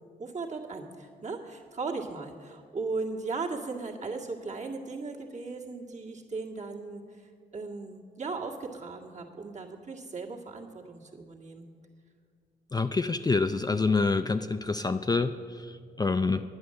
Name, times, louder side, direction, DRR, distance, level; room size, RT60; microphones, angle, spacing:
voice 1, 0.2-11.7, right 3 dB, 40° right, 0 dB, 1.9 m, -37 dB
voice 2, 12.7-16.4, left 4 dB, 20° left, 9 dB, 0.4 m, -27 dB
10.5 x 9.6 x 7.6 m, 2.1 s
cardioid pair, 70°, 18 cm